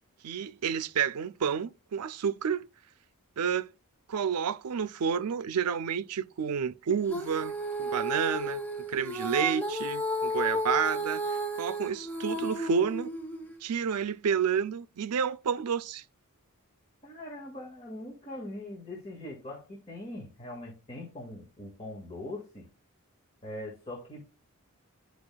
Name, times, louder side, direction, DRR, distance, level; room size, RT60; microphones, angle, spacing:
voice 1, 0.2-2.7 3.4-3.7 4.1-8.6 8.9-13.1 13.6-16.0, right 7 dB, 85° right, 0.4 m, -30 dB
Female singing, 7.1-13.6, equal, 10° left, 1.0 m, -33 dB
voice 2, 17.0-22.7 23.4-24.2, left 1 dB, 25° left, 1.7 m, -41 dB
10.5 x 5.1 x 2.2 m
head